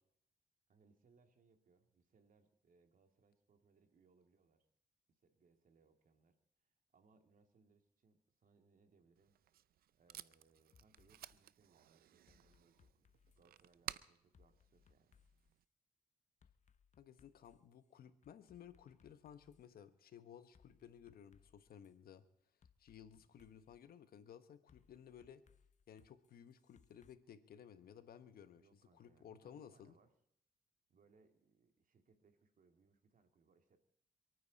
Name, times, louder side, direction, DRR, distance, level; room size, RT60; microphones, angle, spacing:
voice 1, 0.7-4.7 5.1-9.4 9.9-13.1 13.4-15.2 23.2-23.4 28.6-30.1 30.9-33.8, right 4 dB, 60° right, 6 dB, 2.6 m, -72 dB
Packing tape duct tape, 9.2-15.6, right 12 dB, 80° right, 0.6 m, -55 dB
sound 1, 10.7-11.4 12.3-13.7 14.3-15.5 16.4-17.7 18.2-19.6 20.5-21.9 22.6-23.8 24.7-27.1, left 6 dB, 50° left, 1.0 m, -71 dB
voice 2, 17.0-22.2 22.8-25.4 25.9-28.6 28.9-30.0, left 9 dB, 75° left, 11 dB, 1.3 m, -57 dB
28.0 x 9.4 x 4.2 m, 0.74 s
cardioid pair, 60°, 15 cm